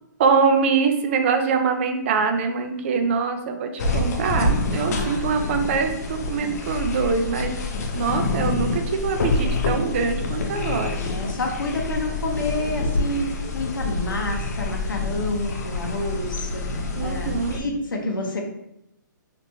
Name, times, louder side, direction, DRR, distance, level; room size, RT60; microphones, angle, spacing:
voice 1, 0.2-7.6 7.9-11.0 17.0-17.7, right 5 dB, 35° right, 6 dB, 0.4 m, -23 dB
sound 1, 3.8-17.6, left 2 dB, 55° left, 0.6 m, -27 dB
voice 2, 11.0-13.3 13.5-16.6 17.0-18.4, left 2 dB, 85° left, 1 dB, 0.9 m, -29 dB
3.3 x 2.9 x 2.9 m, 0.80 s
hypercardioid pair, 155°, 11 cm